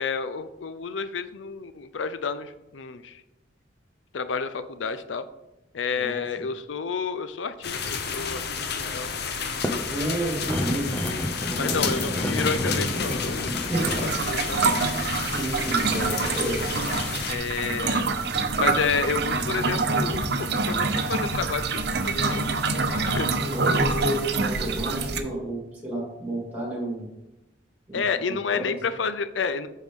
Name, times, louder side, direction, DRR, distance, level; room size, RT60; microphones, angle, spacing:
voice 1, 0.0-3.2 4.1-5.2 5.7-8.6 8.9-9.1 11.6-13.6 14.0-14.8 15.2-15.3 17.3-18.0 18.6-22.6 22.9-23.4 27.9-29.7, left 5 dB, 80° left, 11 dB, 0.5 m, -30 dB
sound 1, 7.6-17.3, left 5 dB, 60° left, 0.9 m, -31 dB
sound 2, 9.4-14.2, equal, 10° left, 0.7 m, -30 dB
voice 2, 9.8-10.9 11.5-12.2 13.6-14.1 14.4-14.6 15.3-16.6 23.4-27.1 27.9-28.2 28.5-28.7, right 1 dB, 10° right, -3 dB, 3.0 m, -31 dB
sound 3, 13.7-25.2, right 4 dB, 60° right, 0.8 m, -26 dB
9.1 x 6.3 x 3.7 m, 0.93 s
head